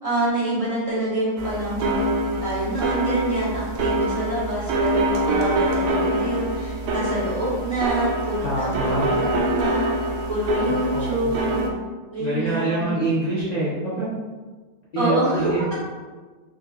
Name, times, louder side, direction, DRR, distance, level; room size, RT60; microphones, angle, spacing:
voice 1, 0.0-2.1 2.4-11.7 12.1-12.9 15.0-15.7, right 1 dB, 40° right, -9 dB, 0.5 m, -26 dB
sound 1, 1.4-11.7, right 1 dB, 75° right, 1.0 m, -25 dB
voice 2, 8.4-9.2 10.9-11.4 12.2-14.1 14.9-15.7, right 2 dB, 45° left, -11 dB, 0.5 m, -25 dB
3.8 x 2.7 x 2.3 m, 1.4 s
omnidirectional pair, 2.0 m